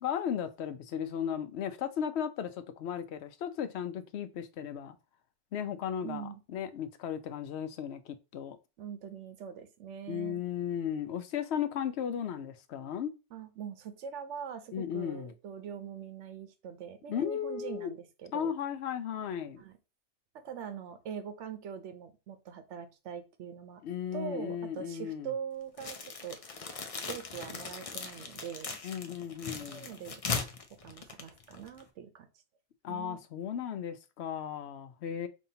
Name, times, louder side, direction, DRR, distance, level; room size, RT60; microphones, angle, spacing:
voice 1, 0.0-5.0 5.5-8.6 10.1-13.1 14.7-15.3 17.1-17.9 18.3-19.6 23.8-25.3 28.8-29.9 32.8-35.3, left 8 dB, 75° left, 0.8 m, -35 dB
voice 2, 6.0-6.4 8.8-10.4 13.3-18.5 19.6-19.7 20.3-23.8 24.1-26.4 27.1-28.8 29.6-30.2 30.8-32.3 32.9-33.2, right 8 dB, 90° right, 1.0 m, -42 dB
sound 1, 25.8-31.9, left 5 dB, 45° left, 0.5 m, -39 dB
5.4 x 2.8 x 2.7 m
omnidirectional pair, 1.2 m